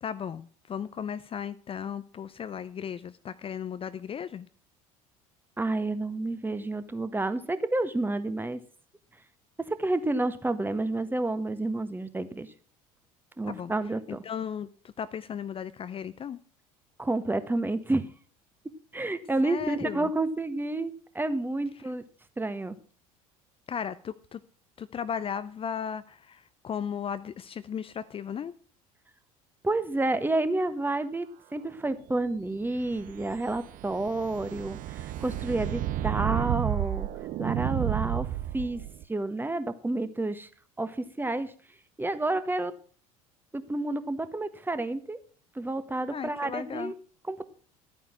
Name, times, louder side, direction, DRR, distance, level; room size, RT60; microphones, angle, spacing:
voice 1, 0.0-4.5 13.4-13.7 14.1-14.7 15.0-16.4 19.4-20.1 23.7-24.4 24.8-28.5 46.1-46.9, left 8 dB, 30° left, 0.7 m, -36 dB
voice 2, 5.6-8.6 9.7-12.5 13.4-14.2 17.0-18.1 18.9-22.0 22.4-22.8 29.6-37.1 37.4-38.3 38.5-38.8 39.1-40.5 40.8-41.5 42.0-42.7 43.5-45.2 45.5-46.9 47.3-47.5, right 2 dB, 10° right, 1.5 m, -30 dB
sound 1, 32.7-39.0, right 13 dB, 50° right, 0.9 m, -32 dB
12.5 x 9.3 x 6.0 m
figure-of-eight pair, 65°, 18 cm